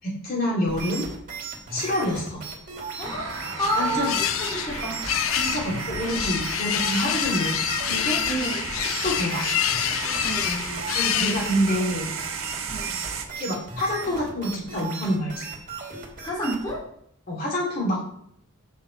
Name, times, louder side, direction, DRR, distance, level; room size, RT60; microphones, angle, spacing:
voice 1, 0.0-1.1 1.7-2.4 3.7-4.1 5.3-8.2 9.0-9.4 10.9-12.1 13.3-15.5 17.3-18.0, equal, 45° left, -4 dB, 3.3 m, -27 dB
sound 1, 0.7-16.8, right 4 dB, 40° right, 2.5 m, -37 dB
sound 2, 3.0-11.9, left 10 dB, 75° left, 0.5 m, -28 dB
voice 2, 3.0-5.0 8.3-8.8 10.2-10.7 11.1-11.3 12.7-12.9 16.2-16.8, right 1 dB, 20° left, -6 dB, 2.9 m, -30 dB
sound 3, 3.0-13.3, right 5 dB, 75° right, 1.4 m, -34 dB
15.0 x 5.8 x 3.4 m, 0.70 s
head